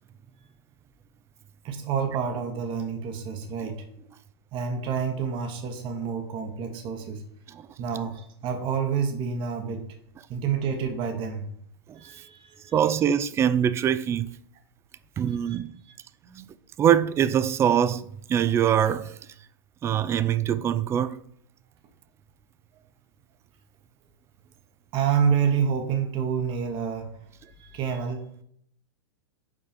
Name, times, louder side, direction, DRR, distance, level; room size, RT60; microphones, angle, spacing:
voice 1, 1.6-3.8 4.5-7.2 7.8-9.8 10.3-11.5 12.0-12.7 13.0-13.1 15.3-15.6 15.8-16.0 16.2-16.4 24.9-27.2 27.6-28.4, right 7 dB, 35° right, 1.1 m, -28 dB
voice 2, 12.7-14.3 15.2-15.7 16.8-19.1 19.8-21.2, right 9 dB, 20° right, 0.3 m, -23 dB
5.4 x 4.7 x 5.1 m
hypercardioid pair, 105°, 15 cm